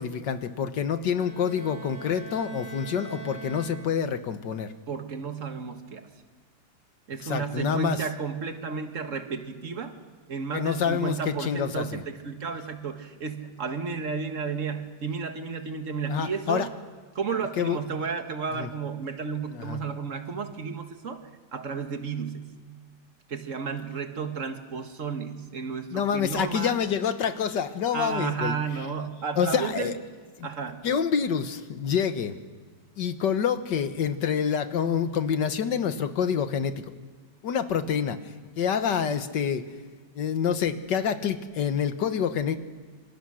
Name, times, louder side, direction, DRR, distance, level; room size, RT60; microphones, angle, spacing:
voice 1, 0.0-4.7 7.2-8.0 10.5-12.0 16.1-16.7 17.6-17.8 18.6-18.7 19.5-19.8 25.9-28.6 29.4-29.9 30.4-30.5 30.8-32.4 33.0-36.8 37.4-38.2 38.6-39.6 40.2-42.6, left 7 dB, 80° left, 10 dB, 1.9 m, -27 dB
Bowed string instrument, 1.2-4.3, right 4 dB, 70° right, 4.4 m, -42 dB
voice 2, 4.9-6.1 7.1-9.9 10.3-16.7 17.2-21.2 21.5-22.5 23.3-26.8 27.9-29.9 30.4-30.8, right 5 dB, 50° right, 6 dB, 1.9 m, -32 dB
27.5 x 26.5 x 6.4 m, 1.4 s
omnidirectional pair, 1.9 m